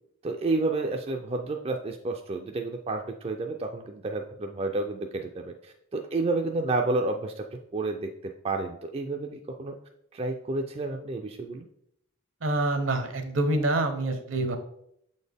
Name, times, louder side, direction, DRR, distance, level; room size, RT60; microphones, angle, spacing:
voice 1, 0.2-8.1 8.4-9.8 10.1-11.7, right 2 dB, 30° right, 3 dB, 0.3 m, -30 dB
voice 2, 12.4-14.6, right 2 dB, 70° right, 6 dB, 0.9 m, -26 dB
7.0 x 4.2 x 3.4 m, 0.73 s
head